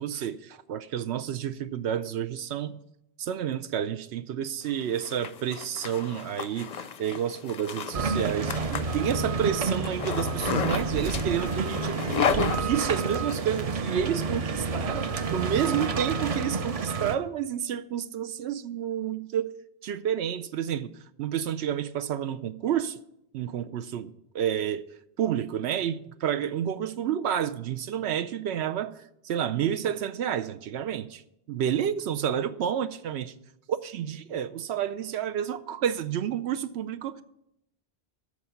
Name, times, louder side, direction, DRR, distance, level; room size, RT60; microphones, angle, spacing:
voice 1, 0.0-2.8 3.2-12.0 12.4-19.5 19.8-23.0 23.3-24.8 25.2-31.2 31.5-33.3 33.7-37.2, right 9 dB, 80° right, 0.8 m, -30 dB
Zipper (clothing), 4.7-13.4, left 7 dB, 50° left, 0.6 m, -33 dB
sound 1, 7.9-17.2, right 4 dB, 40° right, 0.6 m, -29 dB
13.5 x 4.8 x 8.2 m
omnidirectional pair, 1.1 m